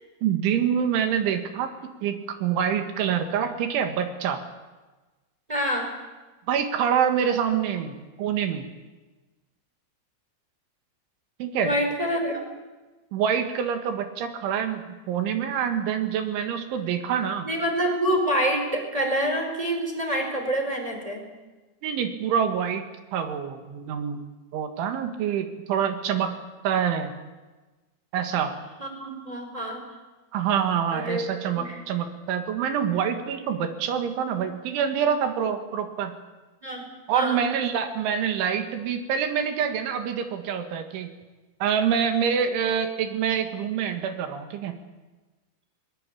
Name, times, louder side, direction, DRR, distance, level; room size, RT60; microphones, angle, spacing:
voice 1, 0.2-1.7 2.0-4.4 6.5-8.7 11.4-11.7 13.1-17.5 21.8-22.9 23.1-26.3 26.6-27.1 28.1-28.5 30.3-36.1 37.1-41.1 41.6-44.7, right 8 dB, 70° right, 7 dB, 4.0 m, -26 dB
voice 2, 5.5-5.9 11.6-12.4 17.4-21.2 28.8-29.8 30.9-31.3 31.5-31.8 36.6-37.4, equal, 5° right, 3 dB, 4.0 m, -27 dB
21.0 x 21.0 x 8.7 m, 1.2 s
omnidirectional pair, 5.9 m